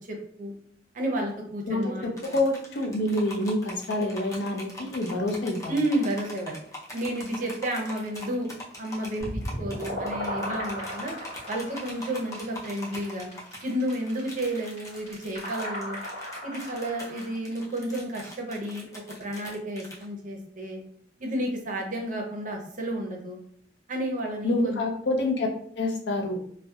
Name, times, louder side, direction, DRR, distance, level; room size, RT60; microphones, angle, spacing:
voice 1, 0.1-0.5 0.9-2.3 5.7-6.6 6.9-8.5 8.8-11.1 11.5-13.3 13.6-16.0 16.4-20.8 21.2-23.4 23.9-24.8, right 1 dB, 45° right, 1 dB, 0.6 m, -31 dB
voice 2, 1.7-5.7 24.4-25.5 25.8-26.4, left 1 dB, 70° left, 2 dB, 0.5 m, -27 dB
sound 1, 2.2-20.0, left 1 dB, 20° left, 0.6 m, -42 dB
sound 2, 9.2-17.3, equal, 35° left, 1.2 m, -36 dB
2.6 x 2.1 x 2.3 m, 0.62 s
head